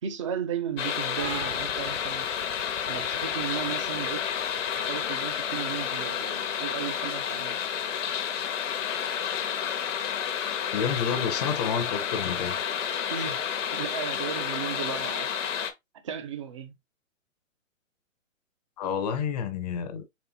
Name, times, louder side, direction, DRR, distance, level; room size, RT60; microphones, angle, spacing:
voice 1, 0.0-2.3 2.9-7.6 13.1-15.5 15.9-16.7, right 8 dB, 25° right, 0.4 m, -35 dB
sound 1, 0.8-15.7, left 8 dB, 65° left, 0.8 m, -30 dB
sound 2, 1.2-8.5, right 8 dB, 45° right, 0.9 m, -46 dB
voice 2, 10.7-12.6 18.8-20.1, left 7 dB, 30° left, 0.6 m, -29 dB
4.2 x 3.2 x 2.8 m
hypercardioid pair, 130°, 40 cm